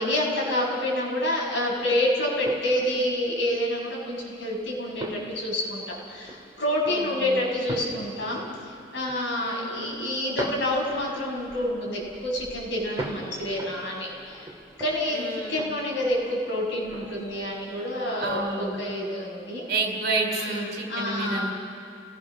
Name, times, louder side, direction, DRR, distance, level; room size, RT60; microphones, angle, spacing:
voice 1, 0.0-14.5 14.8-19.6 20.3-21.5, left 1 dB, 70° left, -3 dB, 6.3 m, -28 dB
sound 1, 1.4-18.8, right 1 dB, 20° right, 2.5 m, -42 dB
voice 2, 6.9-7.4 9.4-9.9 15.1-15.7 18.2-18.8 19.7-21.5, right 3 dB, 55° right, 1 dB, 4.2 m, -30 dB
28.5 x 19.0 x 6.2 m, 2.6 s
head